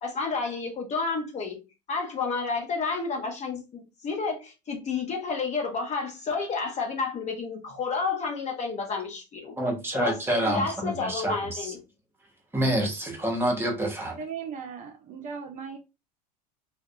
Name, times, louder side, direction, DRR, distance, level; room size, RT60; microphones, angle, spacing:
voice 1, 0.0-1.6 1.9-9.5 9.9-11.8, left 4 dB, 35° left, 0.8 m, -30 dB
voice 2, 9.6-11.7 12.5-14.2, right 1 dB, 10° right, 0.9 m, -27 dB
voice 3, 14.1-15.8, right 6 dB, 40° right, 0.5 m, -37 dB
2.3 x 2.2 x 2.7 m
hypercardioid pair, 80°, 20 cm